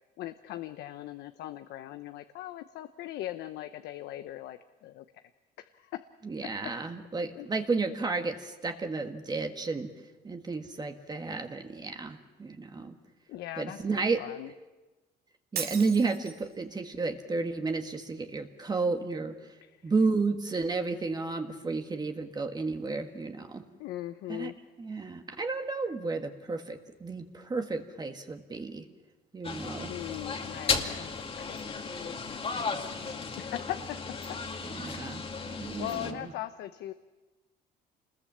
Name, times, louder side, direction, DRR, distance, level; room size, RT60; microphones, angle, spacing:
voice 1, 0.2-5.2 5.6-6.0 6.4-6.7 7.3-7.5 13.3-14.5 19.6-19.9 23.8-24.5 29.9-34.0 34.3-35.0 35.8-36.9, left 13 dB, 80° left, 10 dB, 0.8 m, -40 dB
voice 2, 6.2-9.9 10.2-12.9 13.6-14.2 15.5-19.3 19.8-23.6 24.3-24.5 24.8-28.8 29.3-29.9 34.6-36.3, right 4 dB, 25° right, 5 dB, 1.6 m, -32 dB
Shatter, 15.6-16.5, right 8 dB, 65° right, 2.3 m, -37 dB
sound 1, 29.4-36.1, left 4 dB, 35° left, 2.3 m, -35 dB
26.5 x 20.5 x 7.5 m, 1.2 s
cardioid pair, 110°, 17 cm